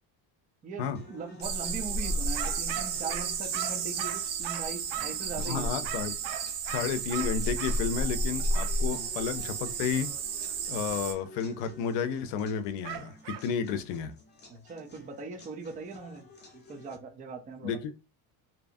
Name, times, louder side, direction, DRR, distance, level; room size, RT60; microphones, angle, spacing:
voice 1, 0.6-5.7 8.8-9.1 14.5-16.3 16.5-17.8, right 4 dB, 20° right, 0.4 m, -40 dB
sound 1, 0.9-17.0, left 2 dB, 25° left, 0.7 m, -52 dB
sound 2, 1.4-11.1, right 3 dB, 55° right, 0.9 m, -32 dB
sound 3, 2.3-5.3 5.8-7.8 8.5-8.8 12.8-13.5, right 13 dB, 75° right, 0.5 m, -39 dB
voice 2, 5.4-6.1 6.7-10.1 10.7-14.1 17.6-17.9, left 7 dB, 70° left, 0.6 m, -32 dB
2.8 x 2.4 x 2.6 m
cardioid pair, 145°, 44 cm